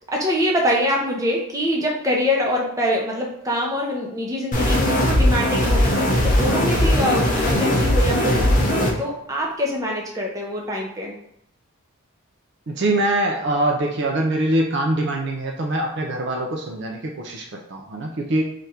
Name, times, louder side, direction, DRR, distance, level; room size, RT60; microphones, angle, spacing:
voice 1, 0.0-11.1, equal, 15° right, -2 dB, 0.6 m, -24 dB
sound 1, 4.5-8.9, left 1 dB, 40° left, 0.7 m, -19 dB
voice 2, 12.7-18.4, right 1 dB, 50° right, 1 dB, 0.4 m, -23 dB
3.3 x 2.5 x 4.2 m, 0.75 s
head